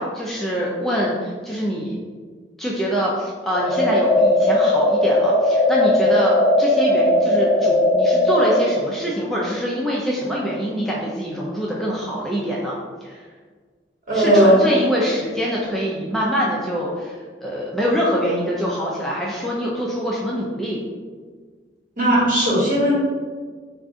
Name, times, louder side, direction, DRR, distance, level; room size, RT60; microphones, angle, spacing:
voice 1, 0.0-2.0 2.6-13.2 14.1-20.8, equal, ahead, -5 dB, 0.4 m, -24 dB
sound 1, 3.5-8.6, left 1 dB, 45° left, 0.7 m, -17 dB
voice 2, 14.1-14.6 22.0-22.9, right 1 dB, 50° right, -7 dB, 1.3 m, -16 dB
3.6 x 2.4 x 3.6 m, 1.6 s
head